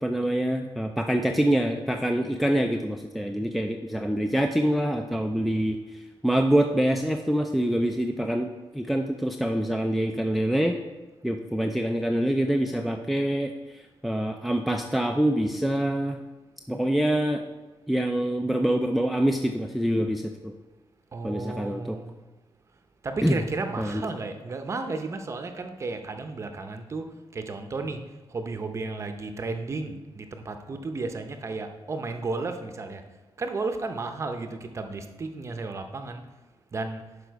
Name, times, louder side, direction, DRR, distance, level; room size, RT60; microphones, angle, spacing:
voice 1, 0.0-10.8 11.2-16.2 16.7-17.4 17.9-20.5 21.2-22.0 23.2-23.4 23.8-24.0, right 1 dB, ahead, 4 dB, 0.3 m, -25 dB
voice 2, 21.1-22.2 23.0-28.0 28.3-33.0 33.4-36.2 36.7-37.0, right 3 dB, 30° right, 6 dB, 0.7 m, -33 dB
11.5 x 4.9 x 4.6 m, 1.2 s
wide cardioid pair, 170°, 9 cm